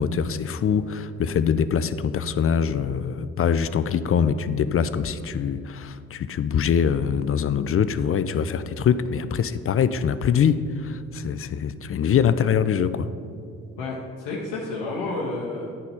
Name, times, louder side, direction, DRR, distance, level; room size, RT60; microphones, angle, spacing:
voice 1, 0.0-13.1, left 7 dB, 40° left, 13 dB, 0.4 m, -23 dB
voice 2, 13.8-15.8, left 3 dB, 85° left, -4 dB, 0.9 m, -30 dB
10.0 x 4.1 x 5.6 m, 2.4 s
hypercardioid pair, 45°, 36 cm